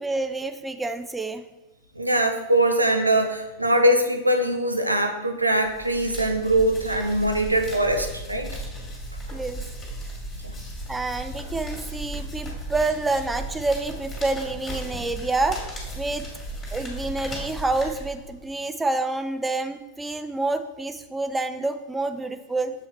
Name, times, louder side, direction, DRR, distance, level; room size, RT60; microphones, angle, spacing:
voice 1, 0.0-1.4 9.3-9.6 10.9-15.6 16.0-16.2 16.7-22.7, right 3 dB, 10° right, 9 dB, 0.4 m, -28 dB
voice 2, 2.0-8.5, right 1 dB, 85° right, 5 dB, 0.7 m, -22 dB
sound 1, 5.6-18.5, right 1 dB, 20° left, 2.0 m, -36 dB
6.9 x 4.6 x 3.1 m, 1.0 s
figure-of-eight pair, 90°, 0 cm